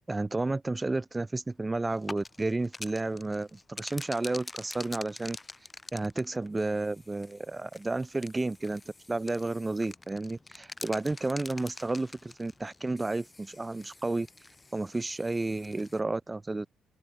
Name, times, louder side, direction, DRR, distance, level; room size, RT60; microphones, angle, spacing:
voice 1, 0.1-5.4 5.9-8.8 9.1-14.3 14.7-16.7, right 2 dB, 20° right, 1.8 m, -31 dB
sound 1, 1.9-16.0, left 3 dB, 20° left, 2.3 m, -47 dB
open air
cardioid pair, 90°, 0 cm